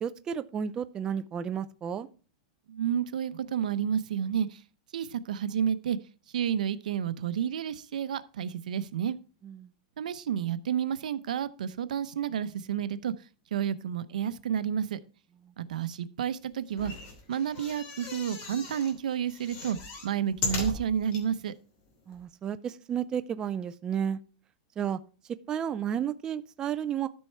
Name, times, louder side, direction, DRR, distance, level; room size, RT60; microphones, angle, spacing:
voice 1, 0.0-2.1 9.4-9.7 15.4-15.5 22.1-24.2 24.8-25.0 25.5-27.1, right 8 dB, 20° right, 11 dB, 0.4 m, -32 dB
voice 2, 2.7-4.6 4.9-6.0 6.3-9.2 10.0-13.1 13.5-15.0 15.6-16.9 17.3-19.8 20.0-21.5, right 8 dB, 85° right, 14 dB, 0.8 m, -30 dB
sound 1, 16.7-18.9 19.3-21.2 21.8-21.9 22.1-22.2, left 4 dB, 40° left, 2.9 m, -38 dB
12.5 x 5.5 x 4.6 m, 0.36 s
supercardioid pair, 155°, 4 cm